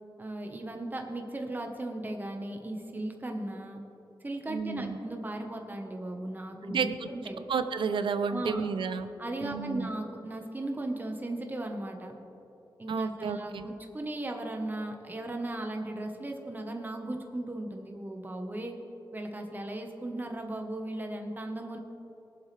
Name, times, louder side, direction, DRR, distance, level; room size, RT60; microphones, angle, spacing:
voice 1, 0.2-3.8 4.2-7.4 8.3-8.7 9.2-12.1 12.8-18.7 19.1-21.8, right 1 dB, 20° right, 2 dB, 1.2 m, -37 dB
voice 2, 4.5-5.0 6.7-7.1 7.5-9.1 9.4-9.9 12.9-13.7, right 5 dB, 85° right, 10 dB, 0.7 m, -31 dB
22.5 x 7.6 x 3.4 m, 3.0 s
wide cardioid pair, 100°, 8 cm